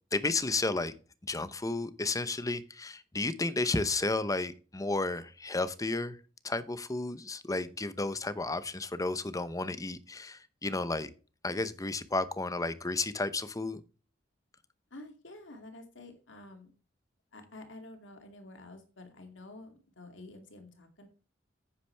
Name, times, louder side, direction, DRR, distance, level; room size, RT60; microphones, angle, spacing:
voice 1, 0.1-0.9 1.2-6.2 6.4-11.1 11.4-13.8, left 2 dB, 20° left, 0.8 m, -32 dB
voice 2, 14.9-16.7 17.3-21.1, left 2 dB, 70° left, 2.5 m, -49 dB
9.9 x 8.5 x 3.4 m
head